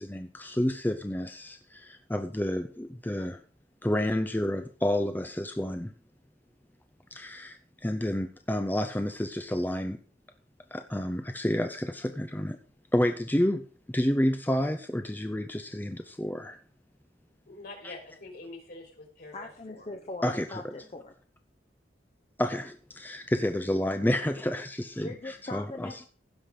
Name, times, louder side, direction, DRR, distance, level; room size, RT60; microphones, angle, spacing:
voice 1, 0.0-3.4 3.8-5.9 7.1-10.0 10.7-12.6 12.9-16.6 17.8-17.9 20.2-20.6 22.4-25.9, left 1 dB, 10° left, 7 dB, 0.6 m, -30 dB
voice 2, 17.5-19.9, left 2 dB, 55° left, 3 dB, 3.8 m, -45 dB
voice 3, 19.3-21.1 24.0-24.2 25.0-26.1, left 2 dB, 35° left, 3 dB, 0.9 m, -41 dB
16.0 x 5.9 x 4.8 m, 0.41 s
head